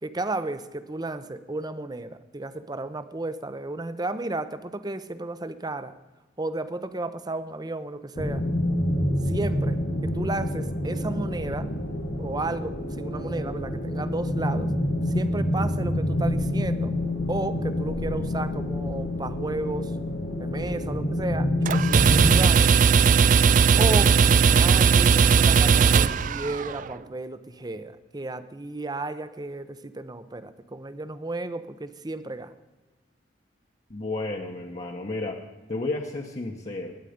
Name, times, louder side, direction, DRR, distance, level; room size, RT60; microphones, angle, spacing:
voice 1, 0.0-5.9 6.4-8.4 9.3-11.7 12.2-14.7 15.1-16.9 17.3-19.9 20.4-22.7 23.8-32.5, right 2 dB, 20° right, 13 dB, 0.7 m, -33 dB
sound 1, 8.2-22.5, left 1 dB, 80° left, 1.9 m, -27 dB
sound 2, 21.7-26.8, right 6 dB, 45° right, 0.4 m, -18 dB
voice 2, 33.9-35.4 35.7-36.9, left 2 dB, 40° left, -1 dB, 1.1 m, -32 dB
20.5 x 9.1 x 5.1 m, 1.2 s
head